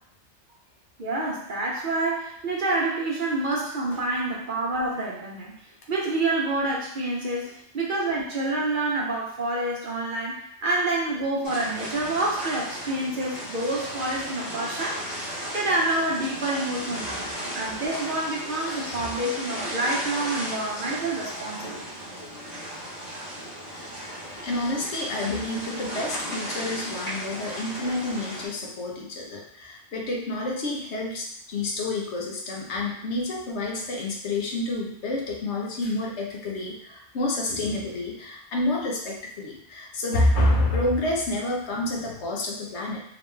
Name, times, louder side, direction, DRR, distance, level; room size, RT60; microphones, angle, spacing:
voice 1, 1.0-5.6 5.9-17.3 17.5-21.8, right 2 dB, 55° right, -2 dB, 0.7 m, -28 dB
sound 1, 11.4-28.5, equal, 35° left, 1.3 m, -35 dB
voice 2, 18.7-19.1 23.7-23.9 24.4-43.0, left 2 dB, 75° left, -1 dB, 1.1 m, -28 dB
3.4 x 3.0 x 3.1 m, 0.69 s
omnidirectional pair, 1.2 m